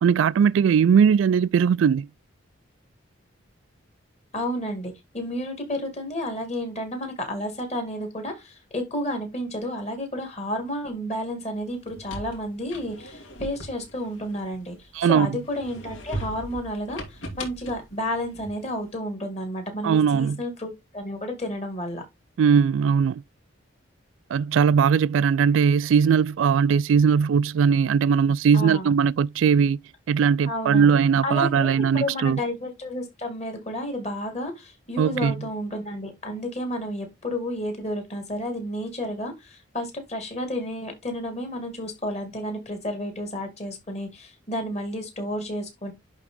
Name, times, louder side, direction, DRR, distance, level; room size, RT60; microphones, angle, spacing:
voice 1, 0.0-2.1 14.9-15.4 19.8-20.4 22.4-23.2 24.3-29.8 30.1-32.4 35.0-35.3, right 7 dB, 75° right, 0.3 m, -19 dB
voice 2, 4.3-22.0 28.5-28.9 30.5-30.9 31.2-45.9, left 1 dB, 35° left, 2.2 m, -31 dB
sound 1, 11.7-15.0 15.4-18.8, equal, 80° left, 2.6 m, -39 dB
11.0 x 3.6 x 3.7 m
head